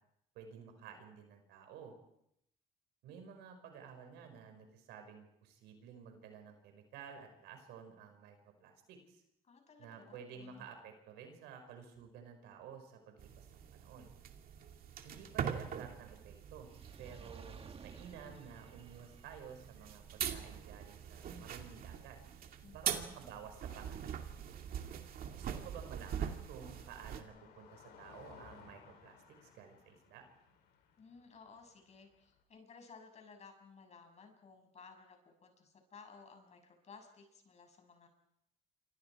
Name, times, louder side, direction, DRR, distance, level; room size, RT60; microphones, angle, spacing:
voice 1, 0.3-2.0 3.0-9.2 9.8-14.1 15.0-16.7 17.0-22.2 22.7-24.2 25.3-30.3, right 7 dB, 90° right, 6 dB, 5.7 m, -53 dB
voice 2, 9.4-10.7 22.6-23.2 31.0-38.1, left 5 dB, 40° left, 5 dB, 6.8 m, -57 dB
sound 1, 13.2-27.2, right 8 dB, 60° right, 2.4 m, -43 dB
Fire, 16.6-22.9 23.6-23.7, right 5 dB, 35° right, 1.8 m, -57 dB
Car passing by, 24.3-32.4, left 7 dB, 75° left, 5.8 m, -61 dB
29.0 x 25.5 x 4.8 m, 0.78 s
cardioid pair, 110°, 17 cm